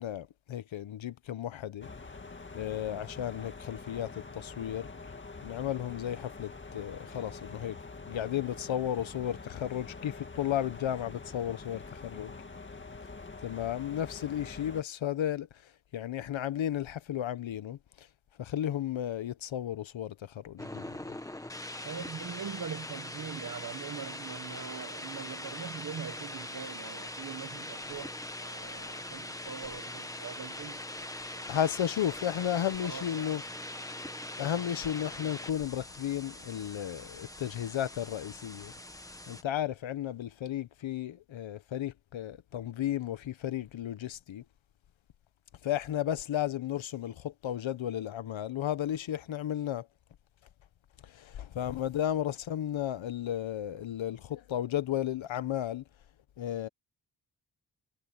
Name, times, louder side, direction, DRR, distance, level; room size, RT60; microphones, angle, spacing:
voice 1, 0.0-1.9 2.5-4.9 5.4-7.8 8.1-12.3 13.4-15.5 15.9-18.1 18.4-21.0 28.7-28.9 31.5-33.4 34.4-38.7 39.3-44.4 45.6-49.9 51.0-55.8 56.4-56.7, left 11 dB, 80° left, 1.1 m, -34 dB
sound 1, 1.8-14.8, left 3 dB, 25° left, 2.0 m, -45 dB
sound 2, 20.6-39.4, left 1 dB, 5° left, 1.1 m, -42 dB
voice 2, 21.8-30.8 31.3-31.6 32.8-33.4, right 7 dB, 45° right, 1.0 m, -42 dB
wide cardioid pair, 160°, 46 cm